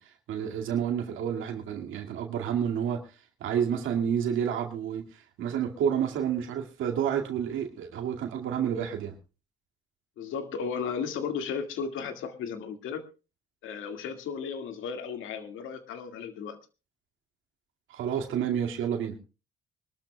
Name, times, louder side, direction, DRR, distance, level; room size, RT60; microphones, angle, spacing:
voice 1, 0.0-3.1 3.4-9.1 17.9-19.2, right 8 dB, 85° right, 2 dB, 2.2 m, -30 dB
voice 2, 10.2-13.0 13.6-16.6, left 6 dB, 85° left, 7 dB, 2.0 m, -35 dB
24.5 x 13.0 x 2.3 m, 0.32 s
cardioid pair, 90°, 20 cm